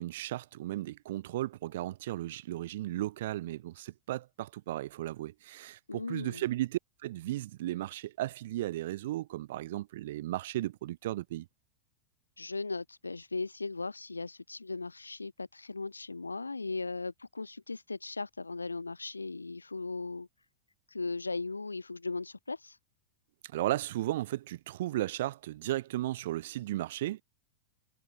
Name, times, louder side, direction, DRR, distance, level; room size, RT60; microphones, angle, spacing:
voice 1, 0.0-11.5 23.5-27.2, right 15 dB, 55° right, 0.6 m, -35 dB
voice 2, 5.9-6.4 12.4-20.3 20.9-22.8, left 3 dB, 80° left, 0.7 m, -38 dB
figure-of-eight pair, 90°, 0 cm